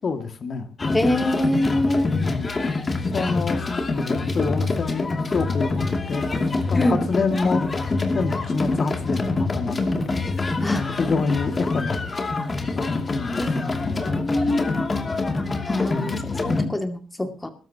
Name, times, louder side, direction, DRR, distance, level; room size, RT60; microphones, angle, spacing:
voice 1, 0.0-0.7 2.2-2.5 2.9-6.2 6.7-7.6 8.1-12.0 12.7-14.2 15.9-16.6, left 4 dB, 45° left, 7 dB, 2.2 m, -28 dB
sound 1, 0.8-16.7, left 3 dB, 30° left, 2.6 m, -25 dB
voice 2, 0.9-2.1 3.2-3.3 6.7-7.3 10.6-10.8 13.3-14.6 15.7-16.1 16.4-17.5, left 1 dB, 15° left, 6 dB, 2.3 m, -24 dB
22.0 x 12.5 x 2.9 m, 0.36 s
cardioid pair, 90°, 0 cm